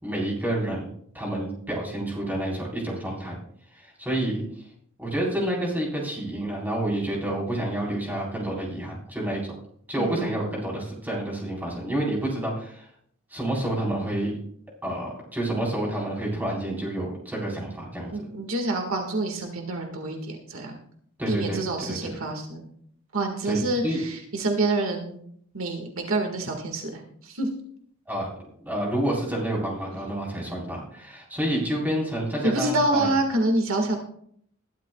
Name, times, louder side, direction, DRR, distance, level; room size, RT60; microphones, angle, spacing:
voice 1, 0.0-0.9 1.1-3.4 3.8-4.4 5.0-9.4 9.9-12.9 13.3-14.4 14.8-18.1 21.2-22.1 23.4-24.0 28.1-28.3 28.6-33.1, right 1 dB, 10° right, -3 dB, 4.1 m, -29 dB
voice 2, 10.0-10.5 18.1-20.8 21.3-22.7 23.1-25.2 25.5-27.5 32.4-34.0, right 2 dB, 70° right, 3 dB, 1.8 m, -27 dB
21.0 x 12.0 x 2.3 m, 0.66 s
head